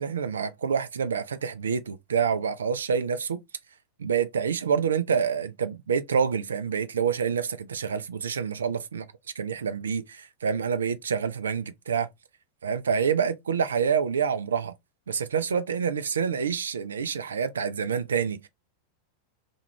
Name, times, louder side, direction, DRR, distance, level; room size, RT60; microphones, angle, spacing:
voice 1, 0.0-3.4 4.0-9.0 9.4-12.1 12.6-14.7 15.1-18.5, right 6 dB, 70° right, 0.3 m, -27 dB
2.4 x 2.1 x 3.0 m
figure-of-eight pair, 90°, 0 cm